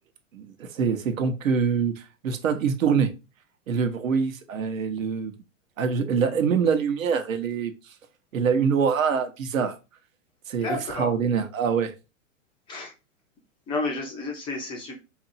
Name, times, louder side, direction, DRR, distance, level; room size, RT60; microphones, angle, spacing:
voice 1, 0.3-3.1 3.7-5.3 5.8-7.7 8.3-9.8 10.5-11.9, right 6 dB, 85° right, 0.9 m, -24 dB
voice 2, 10.6-11.1 12.7-12.9 13.7-15.0, left 2 dB, 15° left, 0.3 m, -31 dB
2.8 x 2.6 x 4.0 m
hypercardioid pair, 130°, 39 cm